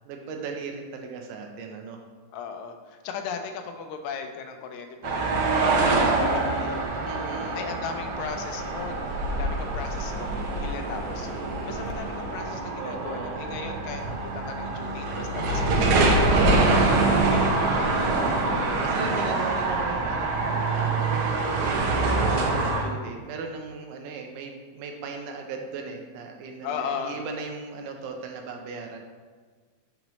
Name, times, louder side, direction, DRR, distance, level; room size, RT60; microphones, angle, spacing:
voice 1, 0.1-2.0 7.0-7.7 12.8-13.4 13.7-13.8 18.4-29.0, right 4 dB, 90° right, 3 dB, 2.2 m, -37 dB
voice 2, 2.3-5.3 5.6-7.1 7.5-11.3 11.7-18.2 18.5-18.8 26.6-27.2, left 6 dB, 80° left, 5 dB, 1.6 m, -37 dB
sound 1, 5.0-22.8, right 2 dB, 75° right, 2.0 m, -25 dB
5.9 x 3.0 x 5.4 m, 1.5 s
omnidirectional pair, 3.7 m